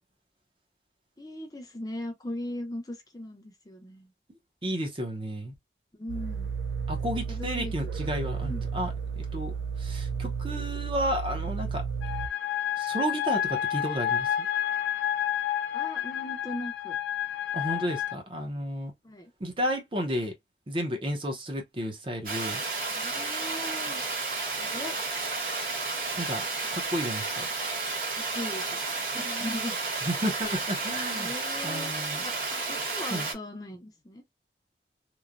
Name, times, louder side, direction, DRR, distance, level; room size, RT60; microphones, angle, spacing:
voice 1, 1.2-4.1 5.9-6.5 7.3-7.7 8.4-8.6 15.7-17.0 19.0-19.3 22.9-24.1 24.6-25.0 28.3-28.8 29.1-29.8 31.1-34.2, left 1 dB, 20° left, 0.5 m, -39 dB
voice 2, 4.6-5.5 6.9-11.8 12.8-14.5 17.5-18.9 19.4-20.3 20.7-22.6 26.2-26.4 26.7-27.5 30.0-31.3 31.6-32.2 33.1-33.3, equal, 30° right, 0.7 m, -32 dB
sound 1, 6.1-12.3, right 6 dB, 85° right, 0.4 m, -33 dB
sound 2, 12.0-18.1, left 10 dB, 80° left, 0.4 m, -30 dB
Water, 22.3-33.3, right 3 dB, 50° right, 1.1 m, -32 dB
3.0 x 2.1 x 2.5 m
head